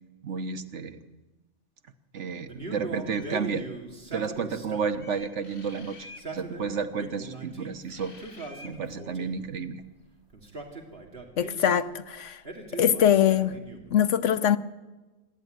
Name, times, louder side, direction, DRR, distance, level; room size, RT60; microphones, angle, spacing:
voice 1, 0.2-1.0 2.1-3.7 4.1-8.1 8.6-9.8, right 5 dB, 70° right, 1.5 m, -32 dB
Male speech man speaking, 2.5-5.0 6.0-7.8 8.2-9.5 10.3-11.8 12.4-14.0, right 3 dB, 55° right, 2.9 m, -40 dB
sound 1, 3.0-3.5 5.0-6.3 7.9-8.8, left 2 dB, 60° left, 2.8 m, -49 dB
voice 2, 11.4-12.4 12.7-13.6 13.9-14.6, left 9 dB, 80° left, 1.2 m, -22 dB
26.5 x 12.5 x 9.3 m
omnidirectional pair, 1.2 m